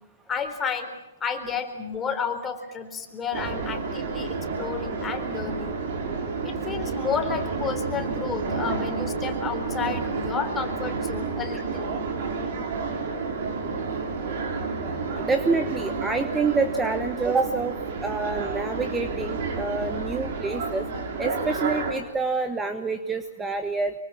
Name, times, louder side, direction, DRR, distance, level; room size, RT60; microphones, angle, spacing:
voice 1, 0.3-0.9 1.2-5.8 6.4-12.0, left 6 dB, 15° left, 5 dB, 4.0 m, -31 dB
sound 1, 3.3-21.9, right 4 dB, 55° right, 5.4 m, -30 dB
voice 2, 15.1-20.8 21.2-23.9, right 4 dB, 10° right, 8 dB, 1.2 m, -27 dB
25.0 x 24.0 x 7.5 m, 1.0 s
hypercardioid pair, 125°, 0 cm